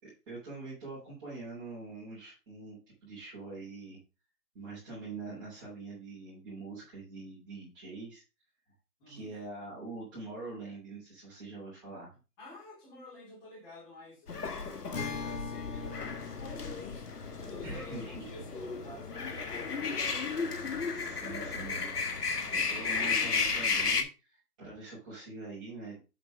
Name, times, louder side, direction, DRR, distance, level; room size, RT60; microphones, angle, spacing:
voice 1, 0.0-4.0 4.5-8.2 9.1-12.1 17.6-18.3 20.9-21.9 22.5-24.0 24.6-26.0, right 3 dB, 15° right, -9 dB, 3.2 m, -44 dB
voice 2, 9.0-9.3 12.4-20.2 21.1-21.7 22.9-23.2, left 1 dB, 10° left, -5 dB, 2.4 m, -50 dB
sound 1, 14.3-24.0, left 5 dB, 80° left, 1.7 m, -34 dB
Acoustic guitar, 14.9-20.4, left 5 dB, 55° left, 1.5 m, -44 dB
sound 2, 15.7-23.4, left 2 dB, 35° left, 1.9 m, -50 dB
7.9 x 4.2 x 5.0 m, 0.31 s
hypercardioid pair, 160°, 46 cm